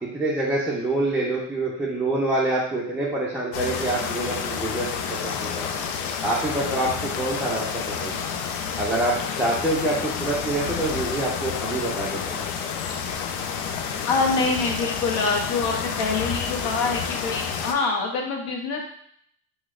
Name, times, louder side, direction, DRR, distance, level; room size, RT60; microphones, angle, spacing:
voice 1, 0.0-5.8 6.2-8.3 8.8-12.4, right 2 dB, 5° right, -7 dB, 0.5 m, -26 dB
sound 1, 3.5-17.7, left 6 dB, 75° left, 0.6 m, -29 dB
voice 2, 14.1-18.9, left 4 dB, 50° left, 2 dB, 0.9 m, -25 dB
3.0 x 2.2 x 3.6 m, 0.68 s
supercardioid pair, 95°, 49 cm